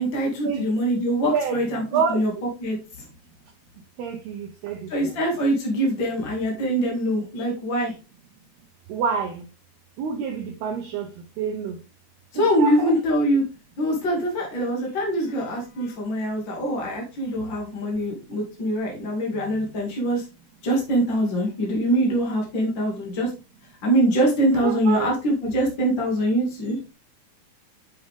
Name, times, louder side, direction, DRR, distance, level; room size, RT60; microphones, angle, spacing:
voice 1, 0.0-2.3 2.6-3.1 4.9-7.9 12.3-13.4 13.8-20.2 20.6-23.3 23.8-26.8, right 1 dB, 70° left, 1.1 m, -23 dB
voice 2, 1.3-1.6 1.9-2.2 4.0-5.2 8.9-9.4 10.0-11.1 11.4-11.8 12.4-12.9 24.6-25.1, right 6 dB, 90° right, 2.2 m, -27 dB
9.2 x 5.7 x 3.4 m
omnidirectional pair, 5.8 m